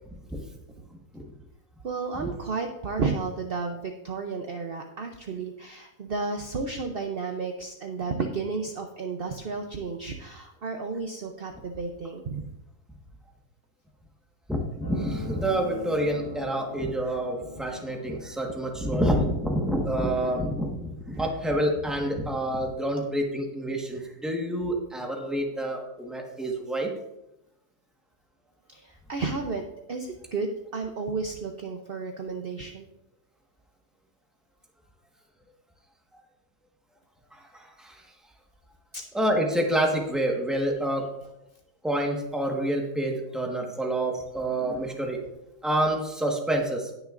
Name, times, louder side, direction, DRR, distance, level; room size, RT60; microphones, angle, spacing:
voice 1, 1.8-12.4 28.7-32.9 38.9-39.1, right 4 dB, 60° right, 4 dB, 0.6 m, -32 dB
voice 2, 14.5-26.9 37.3-37.9 39.1-41.0 41.8-45.2 45.6-46.9, right 1 dB, ahead, 0 dB, 1.1 m, -28 dB
sound 1, 14.8-21.9 22.7-22.8, left 2 dB, 60° left, 4.5 m, -44 dB
18.5 x 6.4 x 2.5 m, 0.90 s
omnidirectional pair, 1.9 m